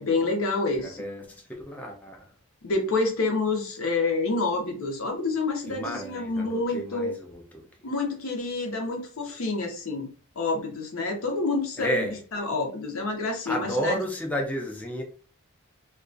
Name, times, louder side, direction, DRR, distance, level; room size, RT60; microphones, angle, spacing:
voice 1, 0.0-1.0 2.6-7.1 7.8-10.1 10.4-14.0, left 3 dB, 80° left, 0.7 m, -28 dB
voice 2, 0.8-2.2 5.6-7.7 11.8-12.2 13.5-15.0, equal, 5° left, 0.3 m, -32 dB
2.3 x 2.2 x 2.5 m
head